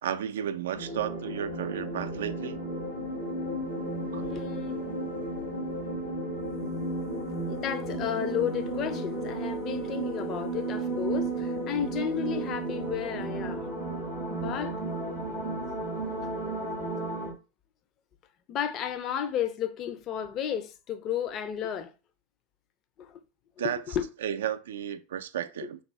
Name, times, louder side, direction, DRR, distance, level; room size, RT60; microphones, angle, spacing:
voice 1, 0.0-2.6 4.1-4.2 23.6-23.8 24.2-25.8, right 10 dB, 65° right, 0.3 m, -33 dB
sound 1, 0.7-17.3, right 2 dB, 90° left, 1.8 m, -33 dB
voice 2, 4.2-4.8 7.5-13.6 14.3-14.8 18.5-21.9 23.0-23.2 23.6-24.1 25.6-25.7, left 9 dB, 40° left, 0.5 m, -33 dB
3.5 x 2.2 x 3.1 m
figure-of-eight pair, 85°, 0 cm